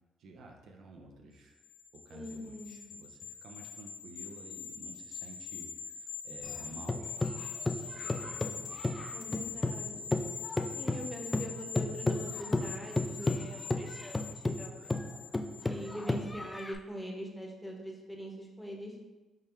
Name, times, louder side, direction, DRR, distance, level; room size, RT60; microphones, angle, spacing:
voice 1, 0.2-1.6 2.0-7.1 7.8-8.8 9.2-10.3, right 2 dB, 75° right, 2 dB, 0.6 m, -51 dB
sound 1, 1.6-16.2 16.6-16.7, left 6 dB, 85° left, 0.5 m, -44 dB
voice 2, 2.1-2.8 9.1-10.0 10.8-14.9 15.5-18.9, equal, ahead, 0 dB, 0.9 m, -43 dB
sound 2, 6.4-9.8 10.1-16.8, left 2 dB, 20° left, 0.3 m, -33 dB
3.7 x 3.2 x 4.3 m, 1.1 s
cardioid pair, 90°, 0 cm